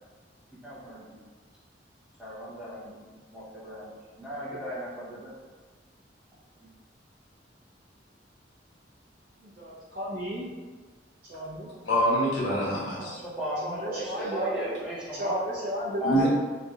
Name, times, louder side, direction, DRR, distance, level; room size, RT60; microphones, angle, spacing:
voice 1, 0.6-1.2 2.2-3.0 3.3-5.3 6.6-6.7 13.0-15.4 16.0-16.3, equal, 5° right, -9 dB, 0.8 m, -35 dB
voice 2, 9.4-10.5 11.3-11.7 13.6-14.5 15.2-16.3, equal, 50° right, -9 dB, 0.6 m, -33 dB
voice 3, 11.8-13.2 16.0-16.3, right 1 dB, 80° left, -7 dB, 1.1 m, -25 dB
3.0 x 2.6 x 2.4 m, 1.4 s
head